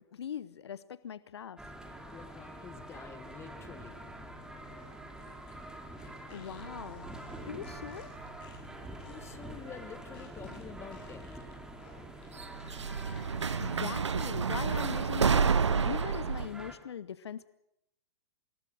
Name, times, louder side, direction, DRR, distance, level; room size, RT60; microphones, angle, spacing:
voice 1, 0.0-1.6 6.3-7.0 7.5-8.1 13.6-17.5, left 8 dB, 70° left, 17 dB, 0.9 m, -41 dB
sound 1, 1.6-16.8, right 1 dB, 5° right, 3.0 m, -46 dB
voice 2, 2.1-4.0 9.0-11.3, left 7 dB, 20° left, 10 dB, 1.9 m, -48 dB
sound 2, 3.8-13.5, left 6 dB, 35° left, 7.7 m, -57 dB
sound 3, 6.5-8.6 8.8-9.5 10.6-10.7 12.4-16.5, right 6 dB, 80° right, 0.7 m, -30 dB
25.5 x 20.0 x 6.3 m, 0.82 s
figure-of-eight pair, 115°, 15 cm